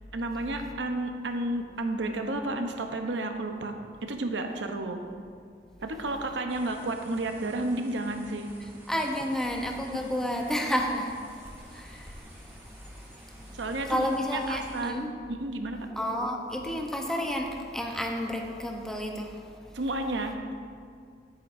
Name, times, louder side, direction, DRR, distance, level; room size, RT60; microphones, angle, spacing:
voice 1, 0.1-5.0 5.8-8.5 9.9-10.1 13.5-15.0 15.4-15.8 19.7-20.5, right 2 dB, 85° right, 5 dB, 0.8 m, -32 dB
sound 1, 6.5-14.9, equal, 15° right, 1.3 m, -51 dB
voice 2, 8.9-12.6 13.4-13.5 13.9-15.1 16.0-19.4, equal, 5° left, 1 dB, 0.8 m, -31 dB
13.0 x 7.9 x 2.6 m, 2.2 s
head